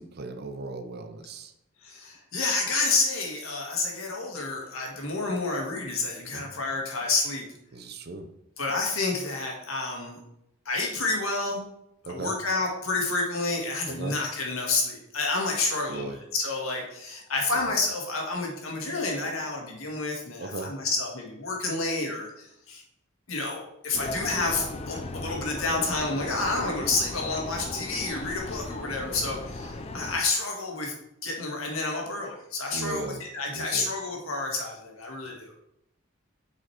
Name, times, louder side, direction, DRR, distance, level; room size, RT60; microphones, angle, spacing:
voice 1, 0.0-1.5 6.3-6.5 7.7-8.3 12.0-12.3 13.9-14.2 15.9-16.2 20.4-20.7 32.7-33.2 33.5-33.9, right 2 dB, 50° right, 8 dB, 0.7 m, -37 dB
voice 2, 1.8-7.5 8.6-10.2 10.7-11.6 12.0-22.8 23.3-30.9 31.2-35.6, left 3 dB, 85° left, 0 dB, 1.8 m, -29 dB
sound 1, 23.9-30.2, left 2 dB, 30° left, 0.5 m, -37 dB
6.3 x 5.0 x 4.5 m, 0.82 s
head